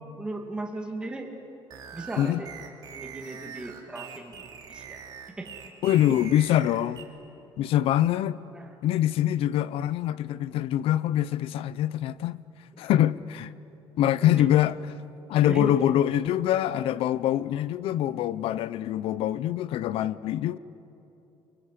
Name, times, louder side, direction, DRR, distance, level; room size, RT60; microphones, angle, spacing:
voice 1, 0.2-1.3 1.9-2.5 2.9-5.0 5.4-5.6 6.1-6.2 8.5-8.7 12.7-12.9 14.2-14.5 15.4-15.7, right 2 dB, 10° right, 2.4 m, -37 dB
sound 1, 1.7-7.0, right 8 dB, 45° right, 3.2 m, -43 dB
voice 2, 5.8-7.0 7.6-8.4 8.8-12.4 12.8-13.5 14.0-14.7 15.3-20.6, left 12 dB, 75° left, 0.7 m, -24 dB
29.5 x 24.0 x 8.4 m
cardioid pair, 175°, 10 cm